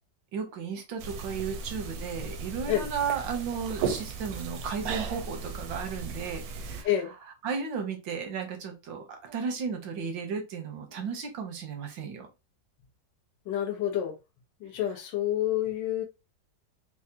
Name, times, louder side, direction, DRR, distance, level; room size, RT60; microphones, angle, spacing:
voice 1, 0.3-6.9 7.4-12.3, right 6 dB, 85° right, 1.7 m, -34 dB
sound 1, 1.0-6.8, right 5 dB, 70° right, 1.0 m, -36 dB
voice 2, 13.4-14.2 14.6-16.0, left 11 dB, 75° left, 1.5 m, -28 dB
4.7 x 2.2 x 2.8 m
omnidirectional pair, 2.0 m